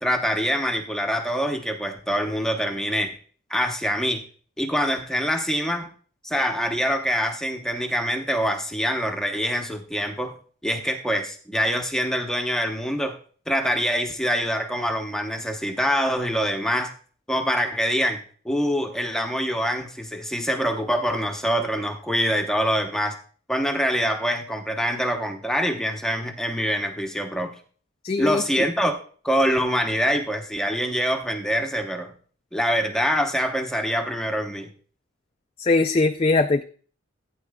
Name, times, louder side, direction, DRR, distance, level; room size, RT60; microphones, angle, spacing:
voice 1, 0.0-3.1 3.5-4.2 4.6-5.9 6.2-10.3 10.6-13.2 13.5-16.9 17.3-23.2 23.5-27.5 28.2-29.0 29.2-32.1 32.5-34.7, equal, 5° left, 3 dB, 0.8 m, -25 dB
voice 2, 28.0-28.4 35.6-36.6, left 3 dB, 30° left, 6 dB, 0.4 m, -20 dB
15.0 x 9.5 x 2.3 m, 0.42 s
head